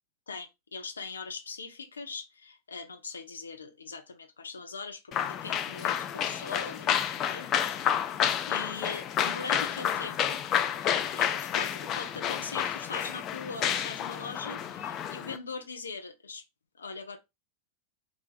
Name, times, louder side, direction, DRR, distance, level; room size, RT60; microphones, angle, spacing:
voice 1, 0.3-8.0 8.5-10.4 10.9-16.4 16.7-17.2, left 4 dB, 70° left, 0.6 m, -41 dB
sound 1, 5.1-15.4, left 9 dB, 30° left, 0.4 m, -30 dB
3.2 x 2.4 x 3.8 m
figure-of-eight pair, 90°, 0 cm